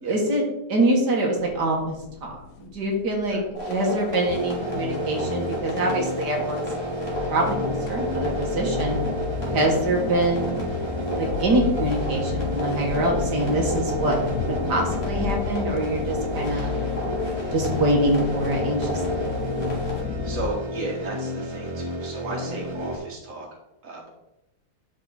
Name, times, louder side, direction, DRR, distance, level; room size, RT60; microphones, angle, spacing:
voice 1, 0.0-3.4 3.7-6.6 7.3-9.0 9.5-10.7 11.2-14.2 14.5-16.7 17.5-19.3, right 1 dB, 90° right, -1 dB, 2.1 m, -25 dB
sound 1, 1.4-20.5, left 6 dB, 70° left, 0.7 m, -34 dB
sound 2, 3.5-20.0, left 1 dB, 40° left, 2.6 m, -31 dB
sound 3, 4.3-22.9, equal, 20° right, 1.1 m, -32 dB
voice 2, 17.2-17.5 20.2-23.5 23.8-24.1, right 2 dB, 55° right, -1 dB, 2.2 m, -34 dB
11.5 x 4.9 x 4.1 m, 0.87 s
omnidirectional pair, 1.7 m